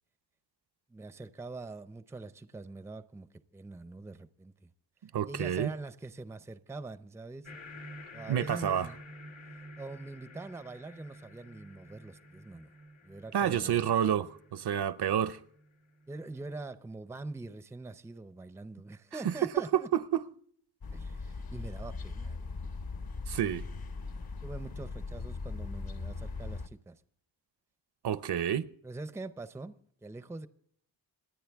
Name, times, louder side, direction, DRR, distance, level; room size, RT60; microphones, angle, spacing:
voice 1, 0.9-4.7 5.3-7.5 8.1-9.0 9.8-12.7 13.0-13.9 16.1-19.9 20.9-22.4 24.4-27.0 28.8-30.5, right 3 dB, 5° right, 0.5 m, -44 dB
voice 2, 5.0-5.7 8.3-8.9 13.3-15.4 19.2-20.2 23.3-23.7 28.0-28.7, right 10 dB, 60° right, 0.6 m, -29 dB
sound 1, 7.4-16.4, left 1 dB, 85° left, 1.6 m, -50 dB
sound 2, 20.8-26.7, left 3 dB, 50° left, 1.0 m, -39 dB
27.5 x 9.4 x 3.4 m
wide cardioid pair, 155°, 46 cm